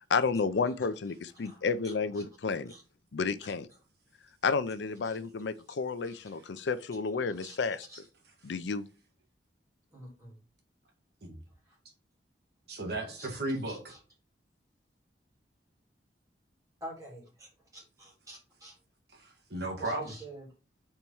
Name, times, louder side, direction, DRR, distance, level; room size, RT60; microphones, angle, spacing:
voice 1, 0.1-2.7 3.1-3.7 4.4-7.9 8.4-8.8, left 4 dB, 75° left, 0.5 m, -31 dB
voice 2, 1.3-2.2 2.7-2.8 5.0-5.2 6.0-6.3 7.3-7.6 7.9-8.0 9.9-10.3 11.7-11.8 13.1-13.3 13.6-14.0 16.8-18.8 19.8-20.5, right 1 dB, 20° right, 3.1 m, -48 dB
voice 3, 12.7-13.9 19.1-20.1, right 2 dB, 60° right, 1.7 m, -35 dB
4.5 x 4.5 x 5.4 m
head